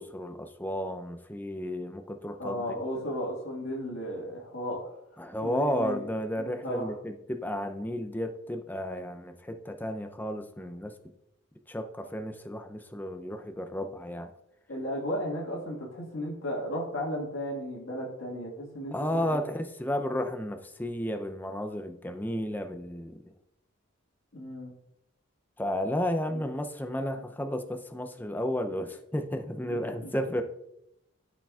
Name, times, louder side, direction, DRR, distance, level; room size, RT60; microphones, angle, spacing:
voice 1, 0.0-2.6 5.2-10.9 11.7-14.3 18.9-23.3 25.6-30.4, equal, 10° left, 7 dB, 0.5 m, -33 dB
voice 2, 2.4-4.9 5.4-6.0 6.4-6.9 14.7-19.4 24.3-24.7 26.3-26.4 30.0-30.1, equal, 80° left, -2 dB, 1.7 m, -34 dB
12.0 x 5.0 x 2.4 m, 0.81 s
head